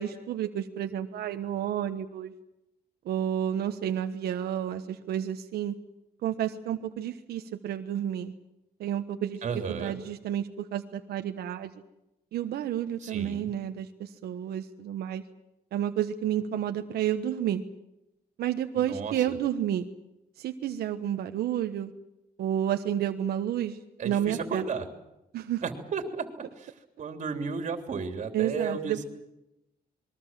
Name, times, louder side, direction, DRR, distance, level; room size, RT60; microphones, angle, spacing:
voice 1, 0.0-2.3 3.0-5.7 6.2-8.3 8.8-9.4 9.7-11.7 12.3-15.2 15.7-17.6 18.4-19.9 20.4-21.9 22.4-23.8 24.0-24.6 25.3-25.6 28.3-29.0, right 10 dB, 90° right, 7 dB, 1.3 m, -30 dB
voice 2, 9.4-10.0 13.0-13.5 18.7-19.4 24.0-24.9 25.6-26.7 27.0-29.0, right 5 dB, 50° right, 6 dB, 3.4 m, -34 dB
27.0 x 22.0 x 7.5 m, 0.89 s
cardioid pair, 140°, 16 cm